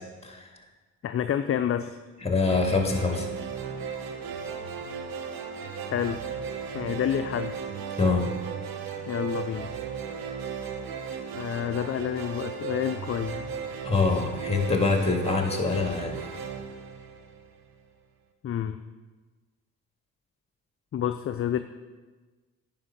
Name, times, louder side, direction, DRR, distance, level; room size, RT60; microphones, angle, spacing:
voice 1, 1.0-2.0 5.9-6.2 6.7-7.6 9.1-9.7 11.3-13.4 18.4-18.8 20.9-21.6, left 9 dB, 40° left, 9 dB, 0.5 m, -29 dB
voice 2, 2.2-3.3 8.0-8.3 13.8-16.2, left 4 dB, 15° left, 3 dB, 1.8 m, -25 dB
sound 1, 2.4-17.7, right 6 dB, 70° right, 1.1 m, -36 dB
9.7 x 5.3 x 5.7 m, 1.3 s
supercardioid pair, 65°, 35 cm